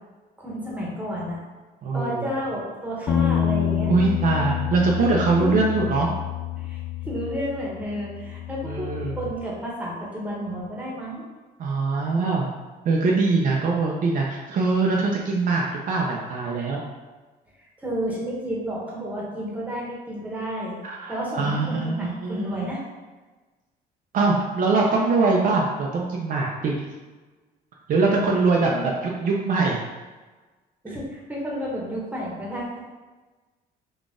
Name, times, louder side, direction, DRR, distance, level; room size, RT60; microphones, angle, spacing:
voice 1, 0.4-1.4 1.9-3.9 5.4-5.6 6.6-8.9 9.2-11.2 17.8-20.8 21.1-22.8 28.6-28.9 30.8-32.8, equal, 10° right, -4 dB, 1.1 m, -31 dB
voice 2, 1.8-2.3 3.9-6.1 8.6-9.2 11.6-12.5 12.8-16.8 20.8-22.7 24.1-26.7 27.9-29.8, right 3 dB, 55° right, -2 dB, 0.6 m, -23 dB
sound 1, 3.1-9.3, left 10 dB, 60° left, 0.4 m, -28 dB
3.9 x 2.4 x 3.7 m, 1.3 s
cardioid pair, 110°, 17 cm